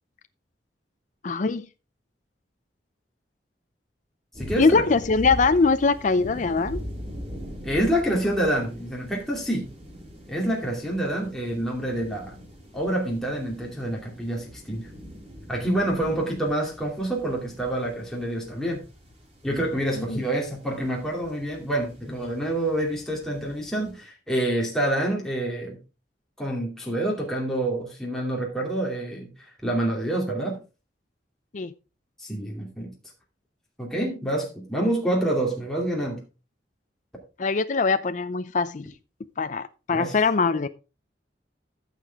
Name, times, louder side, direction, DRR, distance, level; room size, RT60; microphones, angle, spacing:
voice 1, 1.2-1.7 4.6-6.8 20.0-20.2 31.5-31.7 37.4-38.9 39.4-40.7, left 4 dB, 45° left, 11 dB, 0.5 m, -22 dB
sound 1, 4.3-23.9, equal, 35° right, 4.3 m, -42 dB
voice 2, 4.4-4.8 7.6-9.7 10.3-12.4 12.7-14.9 15.5-18.8 19.4-25.8 26.4-29.3 29.6-30.6 32.2-32.9 33.8-36.2 39.9-40.2, right 1 dB, 5° left, -2 dB, 2.5 m, -27 dB
14.0 x 6.7 x 3.5 m, 0.31 s
head